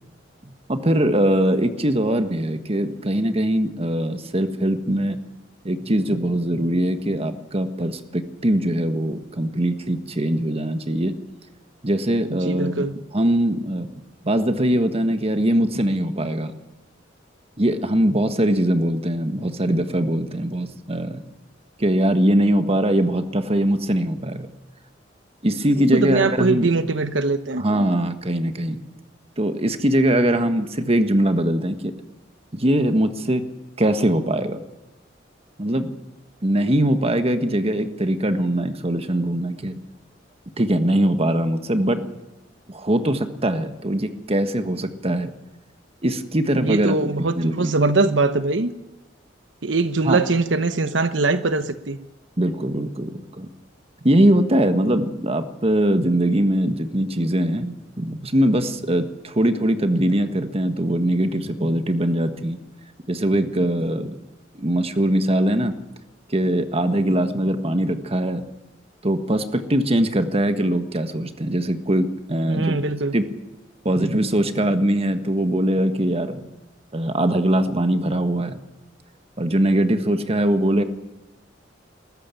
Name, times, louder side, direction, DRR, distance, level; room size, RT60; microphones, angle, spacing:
voice 1, 0.4-5.2 5.6-11.1 11.8-12.9 13.1-13.9 14.2-16.5 17.6-21.2 21.8-24.5 25.4-26.7 27.6-28.8 29.4-31.9 32.5-33.4 33.8-34.6 35.6-35.9 36.4-39.8 40.6-42.0 42.7-45.3 46.0-47.7 50.0-50.2 52.4-53.5 54.0-62.6 63.1-64.2 64.5-65.7 66.3-68.4 69.0-72.8 73.1-73.3 73.8-76.4 76.9-78.6 79.4-80.8, right 1 dB, 35° right, 9 dB, 1.5 m, -21 dB
voice 2, 12.3-12.9 25.9-27.6 46.5-48.7 49.6-52.0 72.5-73.1, right 3 dB, 80° right, 11 dB, 1.0 m, -22 dB
20.5 x 14.5 x 9.1 m, 1.0 s
head